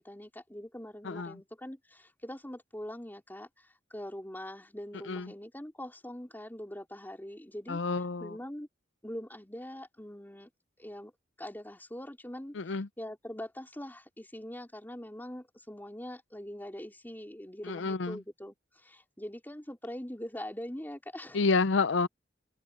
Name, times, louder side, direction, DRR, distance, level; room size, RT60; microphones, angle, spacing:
voice 1, 0.0-8.7 9.0-10.5 10.8-11.1 11.4-21.4, equal, 10° left, 3.8 m, -43 dB
voice 2, 7.7-8.3 12.6-12.9 17.6-18.2 21.3-22.1, left 4 dB, 90° left, 0.6 m, -29 dB
head